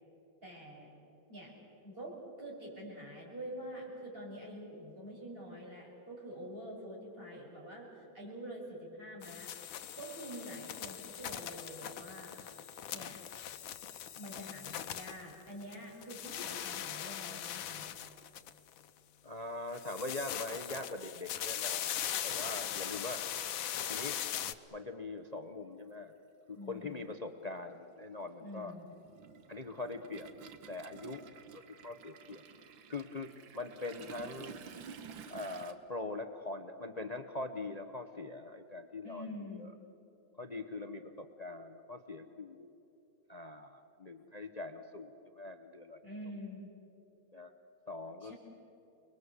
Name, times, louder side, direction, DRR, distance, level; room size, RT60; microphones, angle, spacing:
voice 1, 0.4-0.9 1.3-1.5 1.8-9.5 10.0-12.3 12.9-13.2 14.1-17.9 26.5-27.0 28.4-28.9 39.0-39.6 46.0-46.7 48.2-48.3, equal, 25° right, -3 dB, 7.0 m, -46 dB
sound 1, 9.2-15.8 16.0-18.8 19.7-24.5, left 10 dB, 80° left, 1.6 m, -40 dB
voice 2, 19.2-21.9 22.2-23.5 23.9-24.2 24.7-26.1 26.5-28.7 29.5-30.3 30.7-31.2 31.5-32.4 32.9-34.6 35.3-39.3 39.5-39.7 40.4-42.7 43.3-46.0 47.3-47.5 47.9-48.3, left 2 dB, 40° left, 8 dB, 0.5 m, -42 dB
Toilet flush, 25.2-25.3 26.6-26.8 27.1-35.7, right 6 dB, 75° right, 1.9 m, -51 dB
29.5 x 21.0 x 8.2 m, 3.0 s
omnidirectional pair, 2.1 m